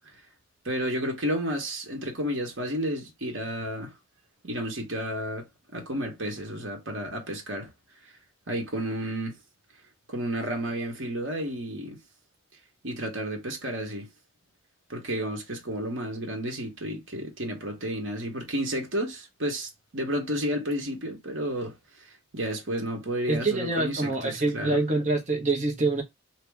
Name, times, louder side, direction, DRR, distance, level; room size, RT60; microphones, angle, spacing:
voice 1, 0.6-3.9 4.4-7.7 8.5-9.4 10.1-12.0 12.8-14.1 14.9-21.8 22.3-24.8, equal, 65° right, 1.2 m, -31 dB
voice 2, 23.3-26.0, right 2 dB, 35° right, 1.0 m, -26 dB
2.9 x 2.9 x 3.4 m
head